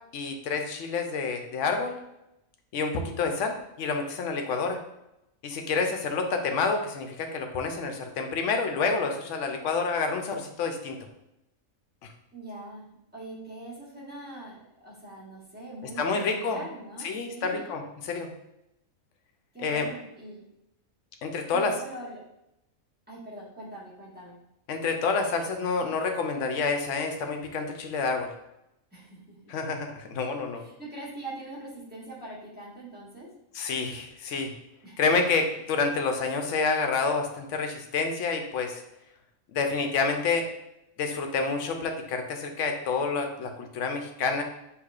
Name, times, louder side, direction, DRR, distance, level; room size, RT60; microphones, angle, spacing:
voice 1, 0.1-2.0 2.7-4.8 5.4-11.0 12.0-12.1 16.0-16.6 17.0-18.3 19.6-19.9 21.2-21.7 24.7-28.3 29.5-30.6 33.5-34.5 35.0-38.8 39.5-40.5 41.0-44.4, left 4 dB, 70° left, 4 dB, 0.9 m, -28 dB
voice 2, 12.3-17.7 19.5-20.4 21.5-22.2 23.1-24.4 28.9-29.5 30.6-33.3 34.8-35.0, right 2 dB, 10° right, -7 dB, 1.2 m, -42 dB
6.3 x 3.0 x 2.4 m, 0.86 s
omnidirectional pair, 1.4 m